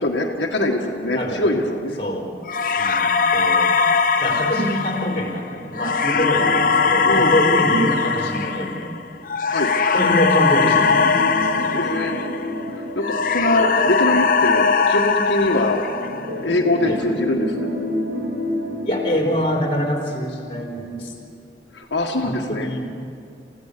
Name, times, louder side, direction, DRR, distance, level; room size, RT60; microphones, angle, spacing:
voice 1, 0.0-2.0 7.0-7.3 9.5-9.7 11.7-12.1 13.0-13.1 13.3-15.8 16.4-17.7 21.7-22.7, left 1 dB, 80° left, 0 dB, 1.7 m, -22 dB
voice 2, 1.1-1.6 2.0-2.3 2.8-3.7 4.2-9.0 9.9-11.7 16.8-17.0 18.8-21.1 22.2-22.9, equal, 30° left, -1 dB, 4.1 m, -24 dB
sound 1, 2.5-12.7 13.0-16.4, left 5 dB, 50° left, 0.9 m, -20 dB
sound 2, 6.1-8.8 10.3-14.6 15.9-20.8 21.1-21.2 21.8-21.9, left 1 dB, 85° right, 3.4 m, -30 dB
28.5 x 16.0 x 6.8 m, 2.5 s
head